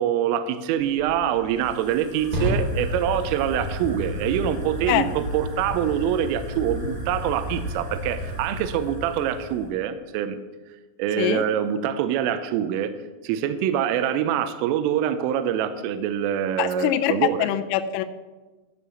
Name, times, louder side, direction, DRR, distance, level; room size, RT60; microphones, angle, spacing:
voice 1, 0.0-10.4 11.0-12.9 13.2-17.5, right 9 dB, 85° right, 11 dB, 3.2 m, -25 dB
Fire, 0.8-9.7, equal, 25° right, 1.8 m, -32 dB
voice 2, 16.6-17.1 17.4-18.0, left 12 dB, 85° left, 6 dB, 3.1 m, -23 dB
13.0 x 5.5 x 7.1 m, 1.2 s
omnidirectional pair, 5.8 m